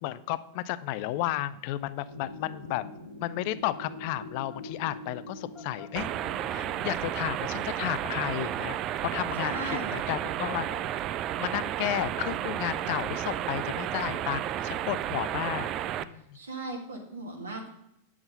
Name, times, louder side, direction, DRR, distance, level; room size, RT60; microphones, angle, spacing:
voice 1, 0.0-2.9 3.2-6.1 6.5-8.8 9.0-10.7 11.4-15.7 16.0-16.4, left 15 dB, 45° left, 15 dB, 0.5 m, -33 dB
sound 1, 2.1-7.1, left 1 dB, 90° left, 0.8 m, -44 dB
sound 2, 4.5-11.6, left 7 dB, 25° left, 2.0 m, -49 dB
sound 3, 6.0-16.0, right 11 dB, 35° right, 0.4 m, -32 dB
voice 2, 9.4-10.0 16.1-17.7, right 2 dB, 70° right, 1 dB, 1.8 m, -37 dB
8.8 x 6.0 x 5.3 m, 0.80 s
figure-of-eight pair, 90°, 0 cm